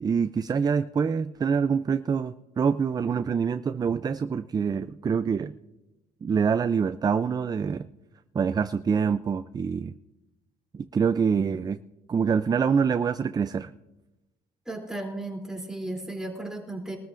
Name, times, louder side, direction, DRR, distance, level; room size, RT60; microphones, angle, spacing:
voice 1, 0.0-5.5 6.2-7.9 8.3-10.0 10.7-11.8 12.1-13.7, right 6 dB, 25° right, 13 dB, 0.4 m, -25 dB
voice 2, 14.7-17.0, right 2 dB, 5° right, 0 dB, 3.1 m, -35 dB
23.0 x 13.5 x 2.5 m, 1.0 s
cardioid pair, 110°, 17 cm